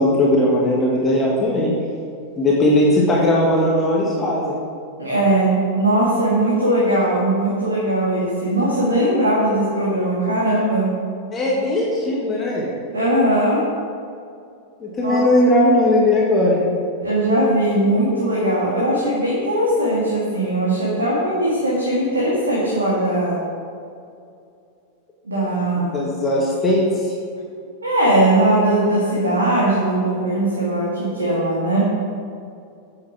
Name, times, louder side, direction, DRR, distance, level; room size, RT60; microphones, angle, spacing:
voice 1, 0.0-1.7 2.4-4.6 11.3-12.7 14.8-16.6 25.8-27.1, left 1 dB, 20° left, -3 dB, 1.7 m, -18 dB
voice 2, 5.0-10.9 12.9-13.6 15.0-15.2 17.0-23.4 25.2-26.1 27.8-31.9, right 1 dB, 75° right, -6 dB, 2.1 m, -19 dB
9.2 x 7.2 x 6.1 m, 2.4 s
figure-of-eight pair, 90°, 0 cm